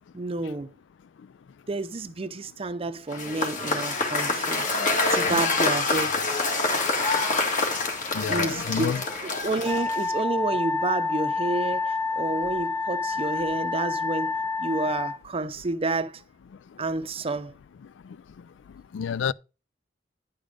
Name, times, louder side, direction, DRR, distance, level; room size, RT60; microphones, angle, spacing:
voice 1, 0.1-0.7 1.7-4.6 5.1-6.2 8.3-8.9 9.4-14.3 14.6-16.2 16.8-17.5, right 2 dB, 30° right, 0.6 m, -30 dB
Cheering / Applause / Crowd, 3.1-10.2, left 3 dB, 45° left, 1.9 m, -26 dB
voice 2, 8.1-9.0 18.9-19.3, left 7 dB, 85° left, 0.4 m, -28 dB
Wind instrument woodwind instrument, 9.6-15.2, left 3 dB, 15° left, 0.5 m, -28 dB
10.0 x 5.2 x 5.0 m
head